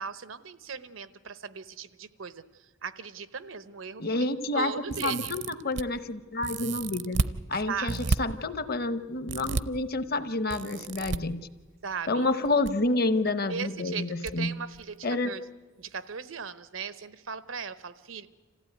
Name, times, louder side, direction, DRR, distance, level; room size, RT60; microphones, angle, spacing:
voice 1, 0.0-4.3 4.5-5.3 7.7-8.1 11.8-12.3 13.5-15.4 15.8-18.3, right 6 dB, 90° right, 14 dB, 0.9 m, -38 dB
voice 2, 4.0-4.7 5.0-11.5 12.1-14.5 15.0-15.3, left 2 dB, 50° left, 13 dB, 0.9 m, -29 dB
sound 1, 4.9-5.8 6.4-7.3 7.9-8.2 9.3-9.6 10.5-11.2 12.3-12.7 13.0-13.1 14.3-14.4 14.7-14.8, right 3 dB, 60° right, 0.6 m, -31 dB
26.5 x 15.0 x 9.3 m, 1.4 s
head